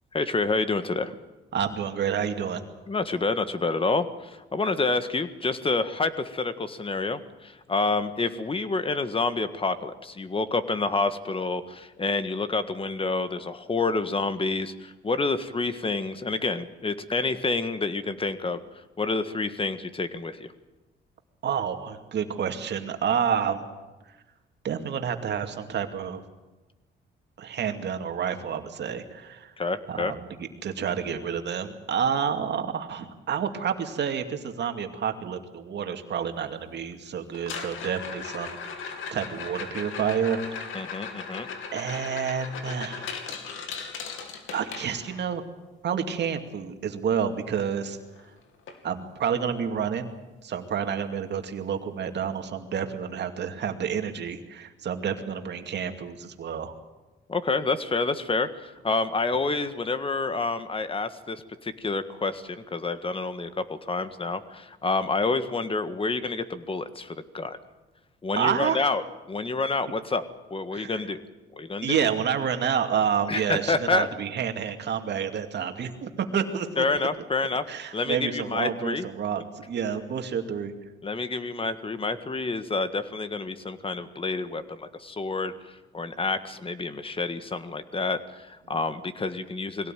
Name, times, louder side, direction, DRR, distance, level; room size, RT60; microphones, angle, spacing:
voice 1, 0.1-1.1 2.9-18.6 19.0-20.5 29.6-30.1 40.7-41.5 57.3-67.6 68.2-70.2 70.5-71.2 71.5-72.1 73.3-74.1 76.8-77.6 77.9-79.1 81.0-85.5 85.9-89.9, left 3 dB, 25° left, 11 dB, 1.7 m, -28 dB
voice 2, 1.5-2.6 21.4-23.6 24.6-26.2 27.4-29.5 29.9-40.8 41.7-43.2 44.5-45.4 45.8-48.0 48.8-50.1 50.4-56.8 68.4-68.9 70.7-71.0 71.8-77.1 77.7-80.7, right 7 dB, 60° right, 6 dB, 2.4 m, -29 dB
sound 1, 37.3-45.3 47.6-47.7 47.9-48.2 48.7-48.8 49.3-49.4 51.3-51.4, left 5 dB, 85° left, 2.8 m, -37 dB
22.0 x 17.5 x 9.2 m, 1.1 s
cardioid pair, 90°, 20 cm